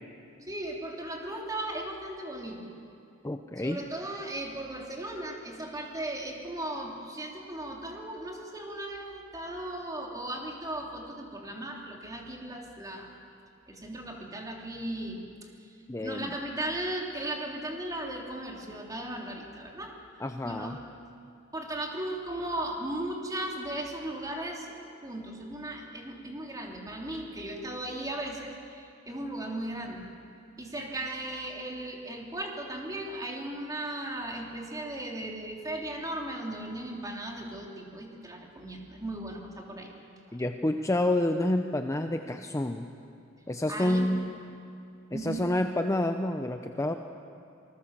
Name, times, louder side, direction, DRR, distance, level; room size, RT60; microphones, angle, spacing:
voice 1, 0.4-2.7 3.6-13.1 13.7-15.7 16.0-19.9 20.4-20.8 21.5-24.7 25.0-30.1 30.6-39.9 40.3-40.4 43.7-44.1 45.1-45.5, right 1 dB, 20° right, 0 dB, 3.2 m, -37 dB
voice 2, 3.2-3.8 15.9-16.3 20.2-20.8 40.3-42.9 43.5-44.3 45.1-47.0, left 1 dB, 15° left, 6 dB, 0.7 m, -28 dB
26.5 x 20.5 x 7.5 m, 2.5 s
head